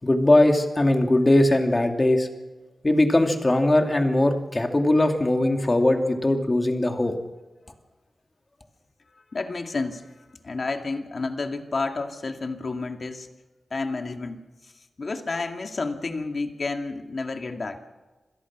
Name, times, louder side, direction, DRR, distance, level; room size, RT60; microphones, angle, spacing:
voice 1, 0.0-2.3 2.8-7.1, left 1 dB, 25° left, 4 dB, 2.7 m, -20 dB
voice 2, 9.3-10.1 10.4-13.3 13.7-14.7 15.0-17.8, left 3 dB, 55° left, 5 dB, 2.2 m, -30 dB
27.0 x 17.5 x 6.2 m, 1.2 s
wide cardioid pair, 85°, 0 cm